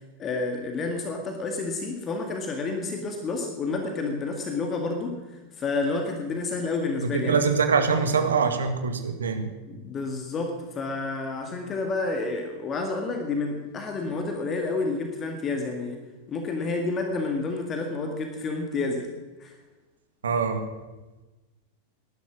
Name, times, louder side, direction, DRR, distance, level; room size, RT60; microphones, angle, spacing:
voice 1, 0.2-7.3 9.7-16.0 16.3-19.1 19.4-19.6, left 3 dB, 25° left, 4 dB, 2.0 m, -30 dB
voice 2, 7.0-9.5 20.2-20.7, right 5 dB, 70° right, 7 dB, 1.8 m, -24 dB
18.5 x 11.5 x 6.3 m, 1.2 s
figure-of-eight pair, 90°, 0 cm